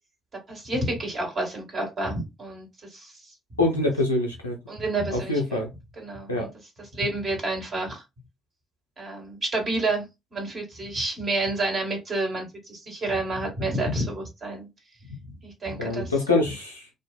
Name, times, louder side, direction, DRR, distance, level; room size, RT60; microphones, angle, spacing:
voice 1, 0.5-2.7 2.9-3.1 4.7-5.6 6.0-6.5 6.9-8.0 9.0-10.0 10.3-14.7 15.4-16.1, right 2 dB, 45° right, 1.3 m, -29 dB
voice 2, 3.6-4.6 5.1-5.7 6.3-6.5 15.8-16.9, left 2 dB, 90° left, 0.5 m, -25 dB
2.5 x 2.3 x 2.2 m
figure-of-eight pair, 45°, 0 cm